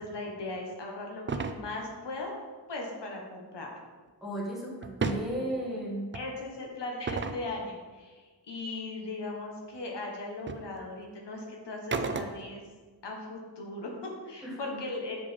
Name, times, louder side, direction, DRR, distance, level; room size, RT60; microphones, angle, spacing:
voice 1, 0.0-2.4 2.7-3.7 5.1-5.5 6.1-12.6 13.0-15.2, left 2 dB, 85° left, 0 dB, 1.6 m, -38 dB
sound 1, 1.3-1.6 4.8-5.3 6.1-6.3 7.1-7.4 9.7-9.8 10.5-10.7 11.9-12.6, right 4 dB, 30° right, 0.4 m, -32 dB
voice 2, 4.2-6.0 14.4-14.8, right 1 dB, ahead, -5 dB, 2.0 m, -35 dB
7.4 x 5.1 x 5.3 m, 1.4 s
wide cardioid pair, 170°, 41 cm